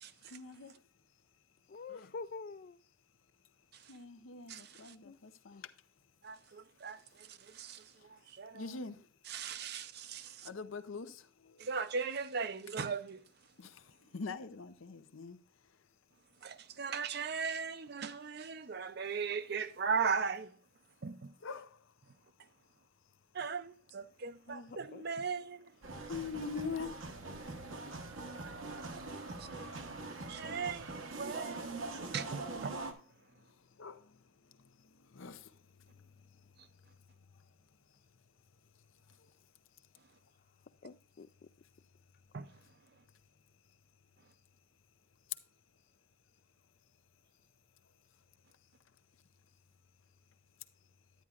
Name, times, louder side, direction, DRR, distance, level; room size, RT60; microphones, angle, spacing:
voice 1, 0.3-0.7 1.9-2.1 3.9-5.7 8.5-9.0 10.4-11.2 13.6-13.7 14.1-15.4 21.4-21.7 26.1-26.9 33.8-34.0 35.1-35.4, left 4 dB, 75° left, 0.7 m, -43 dB
voice 2, 1.7-2.8 5.0-5.2 24.5-25.0 40.8-41.3, left 4 dB, 45° left, 0.3 m, -46 dB
voice 3, 6.2-7.8 8.4-8.7 9.3-10.5 11.6-13.2 16.4-20.5 21.0-21.3 23.3-25.7 28.8-29.0 29.6-29.7 30.3-31.6 32.1-32.8 42.3-42.5, right 5 dB, 50° right, 0.5 m, -38 dB
sound 1, 25.8-32.9, right 3 dB, 80° right, 1.2 m, -43 dB
10.5 x 9.4 x 2.4 m
head